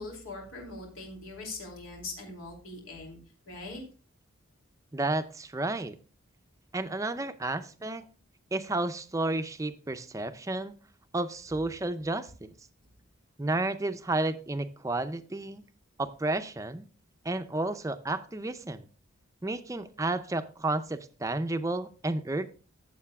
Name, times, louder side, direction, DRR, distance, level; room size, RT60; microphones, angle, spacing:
voice 1, 0.0-3.2 3.5-3.8, left 2 dB, 85° left, 0 dB, 2.8 m, -41 dB
voice 2, 4.9-6.0 6.7-8.0 8.5-10.7 11.1-12.5 13.4-15.6 16.0-16.8 17.2-18.9 19.4-22.5, right 2 dB, 15° right, 10 dB, 0.5 m, -31 dB
14.5 x 7.5 x 2.3 m, 0.37 s
head